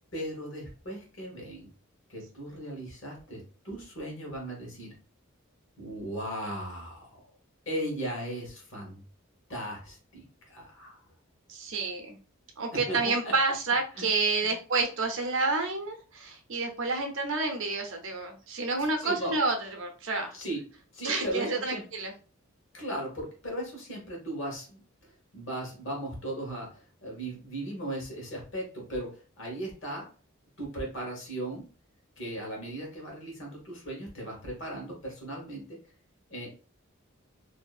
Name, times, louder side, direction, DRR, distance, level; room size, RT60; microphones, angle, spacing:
voice 1, 0.1-1.7 2.1-4.9 5.8-7.2 7.7-9.0 9.5-11.0 12.9-13.3 13.9-14.1 14.4-14.5 19.0-19.4 20.3-20.6 20.9-21.8 22.7-24.8 25.3-30.1 30.6-31.6 32.2-35.8 36.3-36.5, right 1 dB, 60° left, -1 dB, 1.1 m, -37 dB
voice 2, 11.5-12.2 12.6-20.4 21.0-22.1, right 3 dB, 65° right, 4 dB, 0.6 m, -29 dB
2.7 x 2.4 x 2.4 m, 0.36 s
head